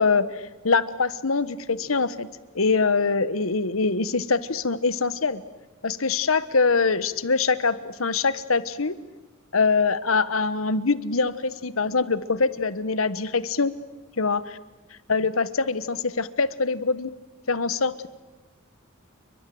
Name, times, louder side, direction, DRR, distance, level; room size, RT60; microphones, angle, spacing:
voice 1, 0.0-2.3 2.5-5.4 5.8-9.0 9.5-13.8 14.2-14.6 15.1-17.1 17.5-18.1, left 4 dB, 85° left, 15 dB, 1.3 m, -24 dB
29.5 x 24.0 x 7.9 m, 1.2 s
head